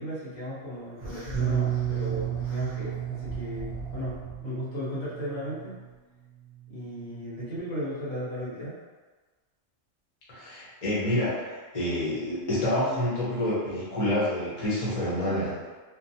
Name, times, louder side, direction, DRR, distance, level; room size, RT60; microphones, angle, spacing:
voice 1, 0.0-5.8 6.7-8.8, equal, 75° left, -9 dB, 1.5 m, -35 dB
sound 1, 1.0-4.4, equal, 15° right, 0.4 m, -42 dB
Bass guitar, 1.3-5.8 6.6-7.6, right 11 dB, 65° right, 0.9 m, -33 dB
voice 2, 10.3-15.6, left 1 dB, 35° left, -8 dB, 0.8 m, -28 dB
3.0 x 2.0 x 2.7 m, 1.4 s
omnidirectional pair, 1.4 m